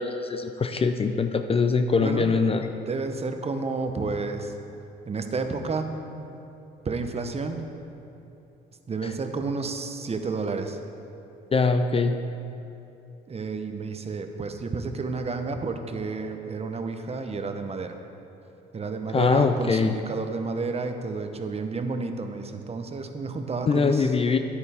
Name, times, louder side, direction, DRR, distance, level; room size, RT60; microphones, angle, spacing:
voice 1, 0.0-2.7 9.0-9.1 11.5-12.2 19.1-19.9 23.7-24.4, left 4 dB, 30° left, 8 dB, 0.5 m, -23 dB
voice 2, 2.0-2.6 2.9-4.5 5.1-6.3 6.8-7.6 8.9-10.8 13.3-18.0 18.7-24.1, right 4 dB, 30° right, 6 dB, 0.8 m, -31 dB
10.0 x 9.0 x 3.5 m, 2.9 s
supercardioid pair, 70°, 21 cm